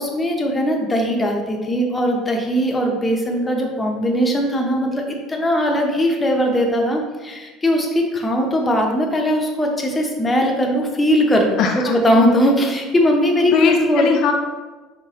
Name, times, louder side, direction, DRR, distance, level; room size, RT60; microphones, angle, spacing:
voice 1, 0.0-14.1, equal, 15° left, 1 dB, 0.7 m, -19 dB
voice 2, 11.6-12.2 13.4-14.3, left 5 dB, 60° left, 3 dB, 0.4 m, -19 dB
4.8 x 3.3 x 2.9 m, 1.3 s
supercardioid pair, 115°, 0 cm